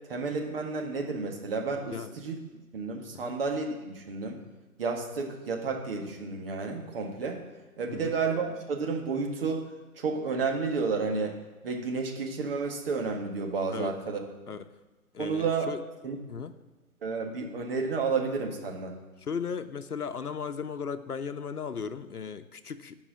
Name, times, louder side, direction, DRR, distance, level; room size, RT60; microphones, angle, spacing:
voice 1, 0.1-2.4 2.7-4.4 4.8-7.4 7.8-9.6 10.0-11.4 11.6-14.2 15.2-15.7 16.0-16.2 17.0-19.0, right 4 dB, 40° right, 2 dB, 1.7 m, -31 dB
voice 2, 15.1-15.8 16.3-16.5 19.2-23.0, left 6 dB, 85° left, 11 dB, 0.8 m, -36 dB
11.0 x 4.9 x 8.4 m, 1.1 s
figure-of-eight pair, 140°, 44 cm